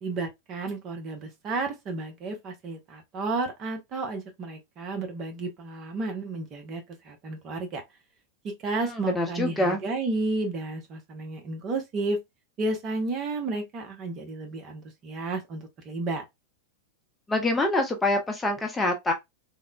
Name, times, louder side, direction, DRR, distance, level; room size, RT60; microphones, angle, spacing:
voice 1, 0.0-7.8 8.4-12.2 12.6-16.2, right 3 dB, 35° right, 0.8 m, -32 dB
voice 2, 8.8-9.8 17.3-19.1, left 2 dB, 10° left, 0.7 m, -25 dB
3.5 x 2.1 x 2.2 m
figure-of-eight pair, 90°, 0 cm